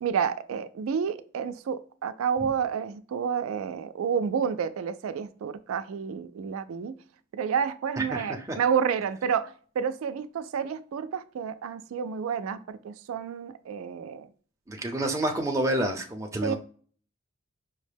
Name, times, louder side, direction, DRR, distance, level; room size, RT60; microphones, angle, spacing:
voice 1, 0.0-6.9 7.3-14.3 16.4-16.5, right 7 dB, 85° right, 0.3 m, -30 dB
voice 2, 8.0-8.6 14.7-16.6, right 1 dB, 15° right, 0.5 m, -29 dB
5.4 x 2.1 x 3.3 m
head